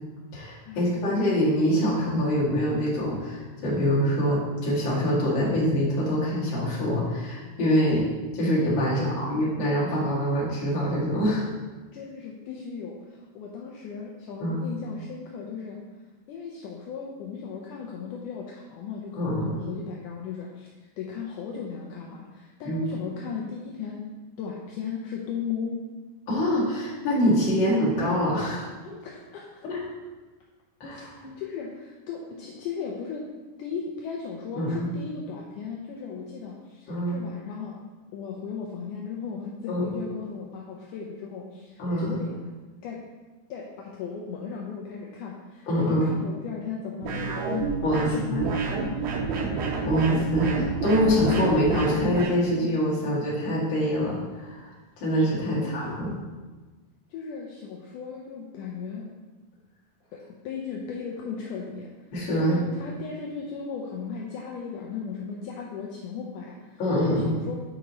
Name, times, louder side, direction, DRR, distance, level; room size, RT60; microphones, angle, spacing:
voice 1, 0.3-8.1 8.3-11.5 14.4-14.6 19.2-19.7 22.7-22.8 26.3-28.7 29.6-29.8 30.8-31.4 34.6-34.9 36.9-37.2 39.7-39.8 41.8-42.2 45.7-46.1 47.8-48.5 49.9-54.6 55.0-56.2 62.1-62.6 66.8-67.4, equal, 40° left, -7 dB, 2.0 m, -25 dB
voice 2, 11.9-15.8 16.3-20.7 21.0-24.1 24.4-25.8 29.0-29.7 30.9-33.3 33.6-37.8 38.1-42.5 42.8-43.0 43.5-47.6 48.0-49.0 55.5-56.1 57.1-59.1 60.1-61.9 62.3-67.6, left 6 dB, 80° left, -2 dB, 1.9 m, -36 dB
sound 1, 47.0-52.3, right 4 dB, 85° right, 2.9 m, -28 dB
8.3 x 4.9 x 3.0 m, 1.3 s
omnidirectional pair, 4.2 m